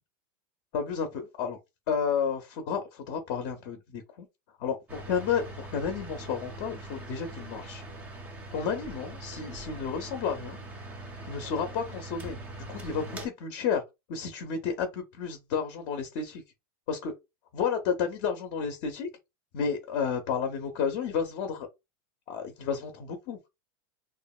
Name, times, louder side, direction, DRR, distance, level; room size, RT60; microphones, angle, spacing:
voice 1, 0.7-1.6 1.9-4.3 4.6-7.8 8.5-10.6 11.3-12.4 12.7-13.8 14.1-16.4 16.9-17.1 17.5-19.1 19.5-21.7 22.3-23.4, left 6 dB, 40° left, 0.5 m, -31 dB
sound 1, 4.9-13.3, right 2 dB, 10° right, 0.4 m, -42 dB
2.8 x 2.4 x 2.3 m
supercardioid pair, 170°, 13 cm